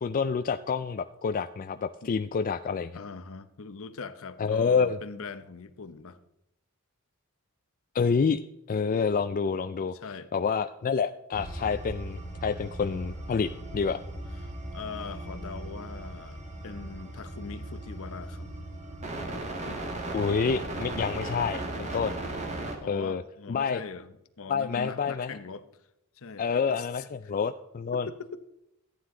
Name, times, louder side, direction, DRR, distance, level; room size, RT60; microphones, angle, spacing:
voice 1, 0.0-3.0 4.4-5.0 7.9-8.4 8.7-9.9 10.3-14.0 20.1-22.2 22.9-23.2 23.5-23.8 24.5-25.4 26.4-28.1, left 5 dB, 40° left, 9 dB, 0.4 m, -28 dB
voice 2, 2.9-6.2 9.9-10.3 14.4-18.5 22.8-25.7 26.2-27.1 28.1-28.4, left 4 dB, 65° left, 11 dB, 0.8 m, -41 dB
sound 1, 11.3-22.8, right 1 dB, 30° right, 1.8 m, -37 dB
14.0 x 9.5 x 3.8 m, 0.84 s
head